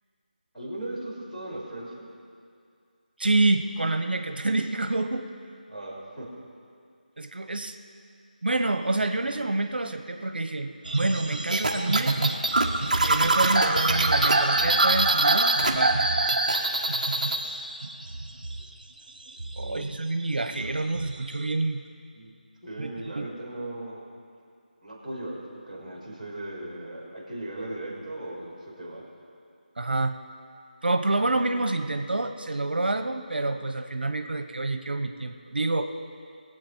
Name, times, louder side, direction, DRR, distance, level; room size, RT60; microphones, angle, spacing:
voice 1, 0.5-2.1 5.7-6.3 19.6-19.9 22.1-22.3 22.6-24.0 24.8-25.4 25.7-29.0, right 1 dB, 5° left, -17 dB, 3.5 m, -37 dB
voice 2, 3.2-5.2 7.2-7.8 8.4-12.2 13.0-16.0 19.6-21.8 22.8-22.9 23.2-23.3 29.8-30.2 30.8-35.8, right 2 dB, 85° right, 7 dB, 1.1 m, -27 dB
sound 1, 10.9-18.8 19.3-21.5, right 2 dB, 65° right, 1.8 m, -27 dB
sound 2, 11.5-15.7 16.0-17.4, right 2 dB, 50° right, 1.3 m, -25 dB
23.0 x 7.9 x 4.6 m, 2.3 s
figure-of-eight pair, 180°, 5 cm